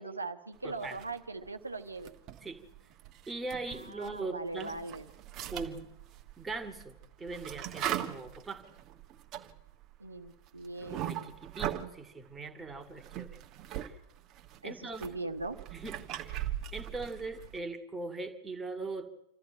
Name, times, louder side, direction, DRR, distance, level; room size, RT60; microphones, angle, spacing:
voice 1, 0.0-2.1 3.7-5.0 10.0-11.3 14.6-15.6, right 3 dB, 80° right, 8 dB, 1.1 m, -40 dB
voice 2, 0.6-1.0 2.4-2.6 3.3-4.8 5.5-5.9 6.4-8.6 10.8-13.3 13.7-14.0 14.6-15.1 15.7-19.2, right 3 dB, 10° right, 5 dB, 2.2 m, -41 dB
sound 1, 0.8-1.5 1.9-4.2 4.5-12.0 12.7-13.9 14.2-17.6, right 11 dB, 35° right, 1.5 m, -40 dB
26.5 x 13.5 x 8.9 m, 0.90 s
figure-of-eight pair, 90°, 0 cm